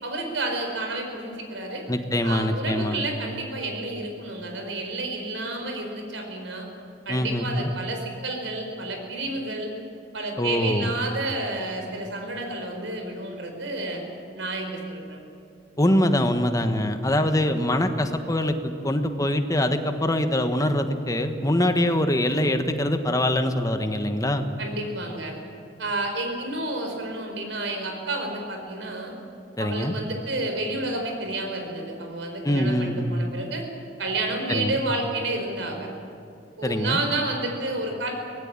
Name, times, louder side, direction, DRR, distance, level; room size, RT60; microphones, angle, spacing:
voice 1, 0.0-1.8 2.2-6.7 7.0-9.7 10.1-14.0 14.3-15.2 24.6-25.3 25.8-29.1 29.6-33.6 34.0-35.9 36.6-38.1, right 2 dB, 80° right, 3 dB, 4.9 m, -30 dB
voice 2, 1.9-3.0 7.1-7.7 10.4-10.9 15.8-24.5 29.6-29.9 32.4-33.1 34.5-34.8 36.6-37.0, left 1 dB, 20° left, 7 dB, 1.4 m, -24 dB
23.5 x 18.0 x 8.9 m, 2.5 s
head